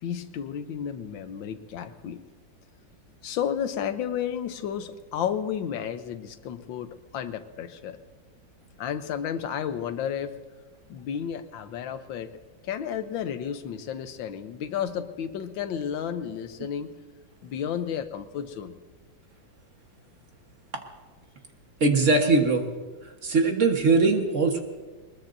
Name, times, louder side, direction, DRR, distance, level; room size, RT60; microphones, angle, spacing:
voice 1, 0.0-2.2 3.2-8.0 8.8-10.3 10.9-12.4 12.6-16.9 17.4-18.8, left 8 dB, 85° left, 10 dB, 1.6 m, -32 dB
voice 2, 21.8-22.6 23.2-24.6, right 3 dB, 45° right, 4 dB, 1.6 m, -21 dB
22.5 x 20.5 x 2.7 m, 1.3 s
omnidirectional pair, 2.0 m